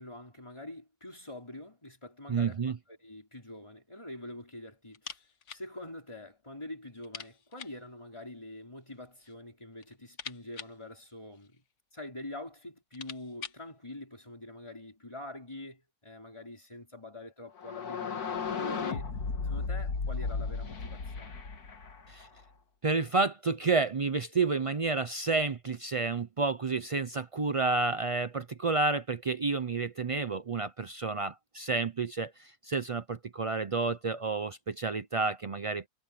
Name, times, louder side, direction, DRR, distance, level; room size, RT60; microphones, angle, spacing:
voice 1, 0.0-5.2 5.5-11.6 11.9-19.1 19.4-21.3, left 1 dB, 20° left, 5.1 m, -45 dB
voice 2, 2.3-2.8 22.1-22.3 22.8-35.9, right 4 dB, 60° right, 0.3 m, -30 dB
sound 1, 4.9-5.7 6.0-6.1 6.4-6.5 7.0-7.9 8.8-9.4 9.7-11.7 12.4-12.5 12.8-13.7, left 7 dB, 55° left, 1.4 m, -46 dB
sound 2, 17.6-22.4, left 5 dB, 80° left, 2.2 m, -35 dB
omnidirectional pair, 1.6 m